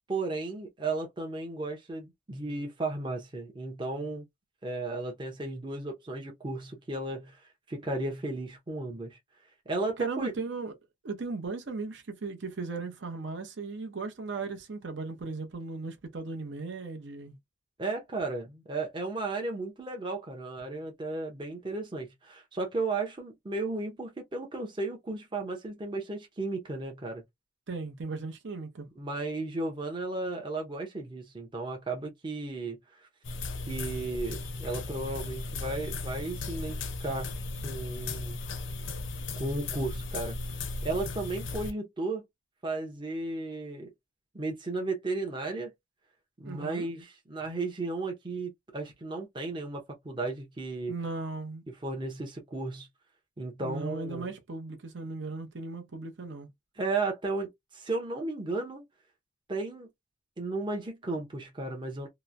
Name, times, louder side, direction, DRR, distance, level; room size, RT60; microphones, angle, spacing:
voice 1, 0.1-4.3 4.6-7.4 7.7-9.2 9.7-10.3 17.8-27.2 29.0-32.8 33.7-38.4 39.4-40.4 40.8-42.3 42.6-43.9 44.3-45.7 46.4-50.9 51.8-52.9 53.4-54.3 56.8-58.8 59.5-59.9 60.4-62.1, right 2 dB, 25° right, 0.6 m, -34 dB
voice 2, 10.0-10.7 11.0-17.4 27.7-28.9 46.4-46.9 50.9-51.6 53.6-56.5, right 3 dB, 65° right, 0.7 m, -37 dB
sound 1, 33.2-41.7, left 3 dB, 75° left, 0.6 m, -36 dB
2.9 x 2.1 x 2.5 m
head